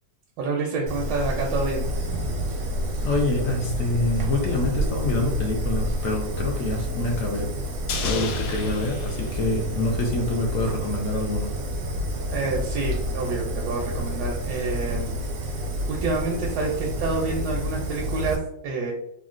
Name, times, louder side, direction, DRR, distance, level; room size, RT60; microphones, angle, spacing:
voice 1, 0.4-2.4 12.3-15.3 15.9-18.4 18.6-18.9, right 3 dB, 85° right, -1 dB, 1.2 m, -28 dB
Fire, 0.9-18.4, equal, 65° right, 0.7 m, -29 dB
voice 2, 3.0-7.5 8.0-11.5, left 2 dB, 70° left, 0 dB, 0.8 m, -26 dB
sound 1, 7.9-10.3 10.6-10.7, left 4 dB, 85° left, 1.3 m, -33 dB
3.7 x 2.1 x 2.4 m, 0.78 s
omnidirectional pair, 1.9 m